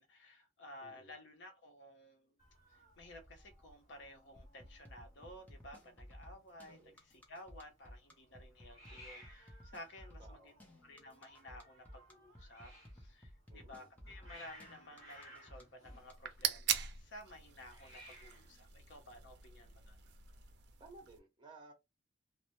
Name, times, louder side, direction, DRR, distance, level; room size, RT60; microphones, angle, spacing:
voice 1, 0.0-2.4 3.0-20.0, left 1 dB, 70° left, 0.7 m, -55 dB
voice 2, 0.8-1.1 6.7-7.0 10.2-10.6 13.5-13.9 20.8-21.7, right 2 dB, 25° right, 0.8 m, -57 dB
Hiss, 2.4-19.7, equal, 35° left, 1.1 m, -61 dB
sound 1, 4.4-16.1, equal, 10° left, 0.6 m, -55 dB
sound 2, 16.0-21.2, right 9 dB, 65° right, 0.4 m, -41 dB
2.1 x 2.0 x 2.9 m
head